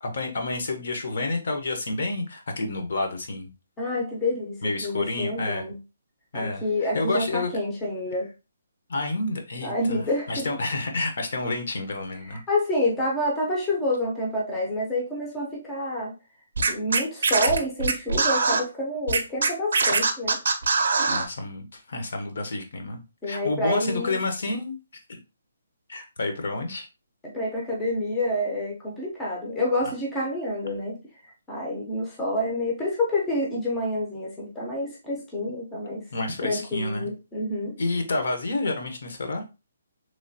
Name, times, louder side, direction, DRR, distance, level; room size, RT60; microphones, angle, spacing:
voice 1, 0.0-3.5 4.6-5.7 6.3-7.5 8.9-12.4 21.1-24.8 25.1-25.2 25.9-26.9 36.1-37.1 37.8-39.4, left 2 dB, 50° left, 4 dB, 0.6 m, -29 dB
voice 2, 3.8-5.8 6.3-8.3 9.6-10.5 12.3-16.1 16.7-20.4 23.2-24.2 27.3-31.0 31.5-36.0 36.4-37.7, left 1 dB, 5° left, -3 dB, 0.5 m, -28 dB
Scratching (performance technique), 16.6-18.6 19.1-21.3, right 4 dB, 60° right, 0.5 m, -22 dB
3.1 x 2.2 x 2.6 m, 0.28 s
hypercardioid pair, 180°, 0 cm